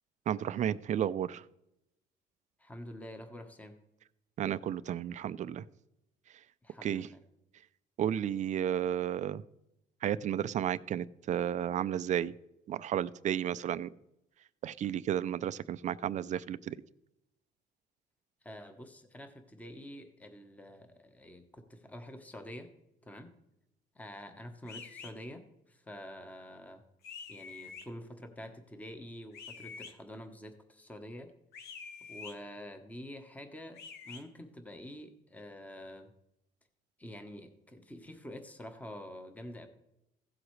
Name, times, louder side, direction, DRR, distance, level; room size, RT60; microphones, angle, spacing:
voice 1, 0.3-1.4 4.4-5.6 6.8-7.1 8.0-9.4 10.0-12.3 12.7-13.9 14.6-16.8, right 10 dB, 45° right, 17 dB, 0.4 m, -32 dB
voice 2, 2.6-3.7 6.6-7.2 18.4-22.7 23.0-23.3 23.9-26.8 27.3-31.3 32.1-36.1 37.0-39.7, left 1 dB, 10° left, 6 dB, 1.0 m, -47 dB
sound 1, 24.7-25.1 27.0-27.9 29.3-29.9 31.5-32.3 33.7-34.2, left 5 dB, 70° left, 1.2 m, -46 dB
15.5 x 7.8 x 3.2 m, 0.86 s
cardioid pair, 110°, 17 cm